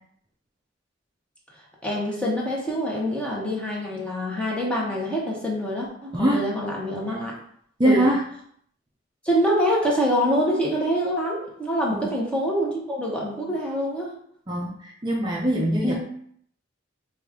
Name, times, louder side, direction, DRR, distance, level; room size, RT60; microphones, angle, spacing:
voice 1, 1.8-7.3 7.8-8.1 9.2-14.1 15.8-15.9, equal, 5° left, -3 dB, 0.9 m, -25 dB
voice 2, 7.8-8.2 11.9-12.1 14.5-15.9, right 1 dB, 25° right, -3 dB, 0.5 m, -22 dB
4.8 x 2.4 x 3.6 m, 0.65 s
head